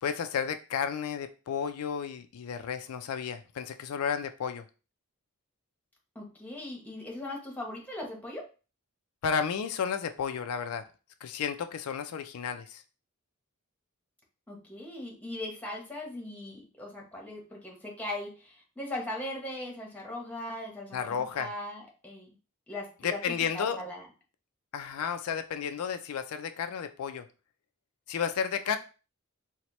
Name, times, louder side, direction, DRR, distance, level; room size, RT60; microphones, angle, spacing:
voice 1, 0.0-4.6 9.2-10.8 11.2-12.8 20.9-21.5 23.0-23.8 24.7-27.3 28.1-28.8, left 7 dB, 85° left, 8 dB, 0.4 m, -32 dB
voice 2, 6.1-8.5 14.5-22.3 22.7-24.1, left 1 dB, 5° left, -1 dB, 0.9 m, -39 dB
4.2 x 2.1 x 3.0 m, 0.34 s
head